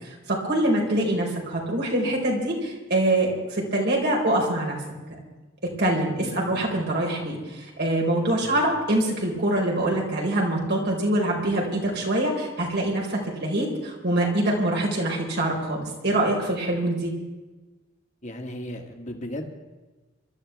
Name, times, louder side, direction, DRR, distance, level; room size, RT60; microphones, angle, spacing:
voice 1, 0.0-4.8 5.8-17.1, right 1 dB, 60° right, -1 dB, 4.6 m, -24 dB
voice 2, 6.2-6.9 8.4-8.6 18.2-19.6, left 1 dB, 40° left, 3 dB, 2.0 m, -37 dB
25.0 x 13.0 x 3.5 m, 1.2 s
head